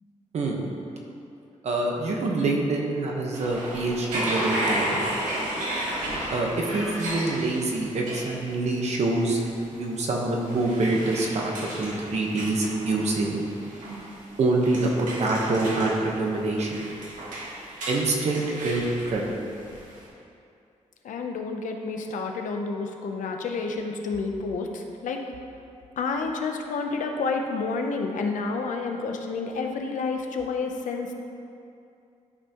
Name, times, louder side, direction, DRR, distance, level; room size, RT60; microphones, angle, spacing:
voice 1, 1.6-5.0 6.3-9.4 9.7-13.4 13.9-14.0 14.4-16.8 17.9-19.2, right 2 dB, 60° right, 0 dB, 1.2 m, -26 dB
sound 1, 3.3-20.0, right 1 dB, 85° right, 2.0 m, -34 dB
voice 2, 21.0-25.2 26.0-31.1, left 4 dB, 85° left, 3 dB, 0.8 m, -29 dB
12.5 x 5.6 x 3.0 m, 2.6 s
wide cardioid pair, 165°, 13 cm